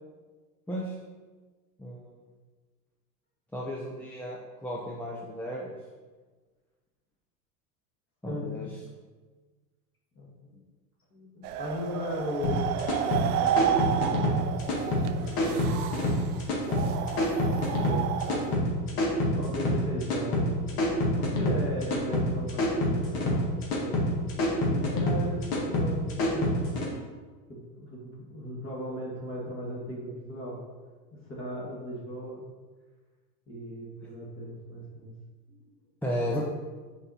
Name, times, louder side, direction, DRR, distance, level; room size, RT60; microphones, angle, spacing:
voice 1, 1.8-2.1 3.5-5.7 8.2-8.7 36.0-36.4, equal, 5° left, -4 dB, 0.4 m, -34 dB
voice 2, 8.2-8.6 10.2-10.6 11.1-12.7 13.2-14.5 15.2-15.7 17.5-20.8 21.1-24.1 24.6-26.8 27.5-30.6 31.1-32.5 33.5-35.1 35.5-35.7, equal, 25° left, -3 dB, 1.8 m, -38 dB
sound 1, 11.4-18.6, right 10 dB, 70° right, 0.6 m, -31 dB
sound 2, 12.4-26.9, left 1 dB, 50° left, 1.9 m, -27 dB
5.7 x 4.3 x 4.1 m, 1.4 s
hypercardioid pair, 110°, 47 cm